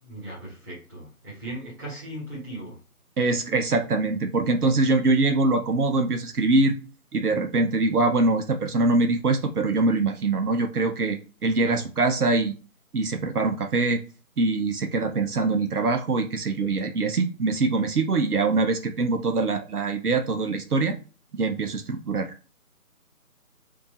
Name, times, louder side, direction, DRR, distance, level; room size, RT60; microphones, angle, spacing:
voice 1, 0.0-2.8 11.6-11.8, right 1 dB, 15° right, -8 dB, 1.6 m, -38 dB
voice 2, 3.2-6.8 7.1-12.5 12.9-14.0 14.4-21.0 21.3-22.3, right 3 dB, 80° right, 6 dB, 1.0 m, -23 dB
4.3 x 2.8 x 4.3 m, 0.34 s
figure-of-eight pair, 165°, 45 cm